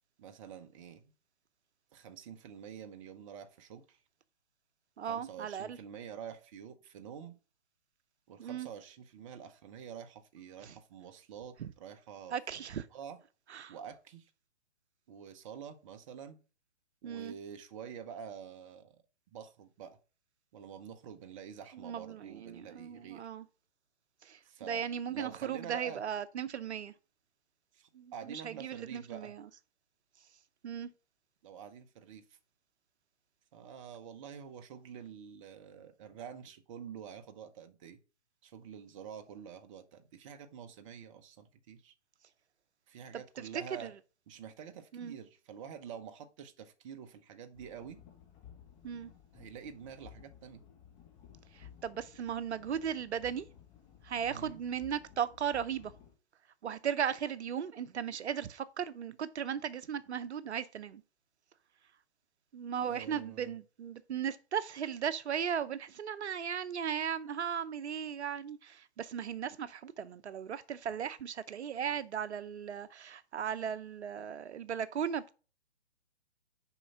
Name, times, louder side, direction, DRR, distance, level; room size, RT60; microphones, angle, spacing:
voice 1, 0.2-1.0 1.9-4.0 5.1-7.3 8.3-13.2 13.7-14.3 15.1-16.4 17.0-19.0 19.3-20.0 20.5-23.3 24.4-26.0 27.7-29.3 31.4-32.4 33.5-38.0 38.4-41.9 42.9-43.9 44.3-48.0 49.3-50.6 54.3-54.6 62.8-63.6, right 8 dB, 30° right, 0.8 m, -48 dB
voice 2, 5.0-5.8 8.4-8.7 10.6-10.7 11.6-11.7 12.3-12.9 13.5-13.7 17.0-17.3 21.7-23.4 24.2-24.4 24.7-26.9 27.9-29.4 30.6-30.9 43.5-43.9 44.9-45.1 48.8-49.1 51.5-53.5 54.0-55.9 56.6-61.0 62.5-75.3, right 8 dB, 70° right, 0.7 m, -37 dB
sound 1, 47.5-56.1, left 9 dB, 20° left, 1.4 m, -56 dB
6.9 x 5.1 x 5.8 m
hypercardioid pair, 145°, 35 cm